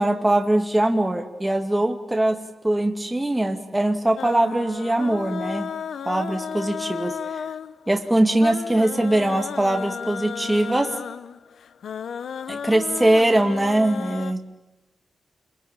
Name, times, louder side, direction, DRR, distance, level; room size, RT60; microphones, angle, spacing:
voice 1, 0.0-2.4 2.6-5.7 6.1-7.4 7.9-10.9 12.5-14.4, right 1 dB, 10° right, 4 dB, 2.0 m, -21 dB
sound 1, 4.2-14.3, left 7 dB, 85° left, 0.9 m, -34 dB
27.5 x 22.0 x 8.9 m, 1.0 s
cardioid pair, 95°, 0 cm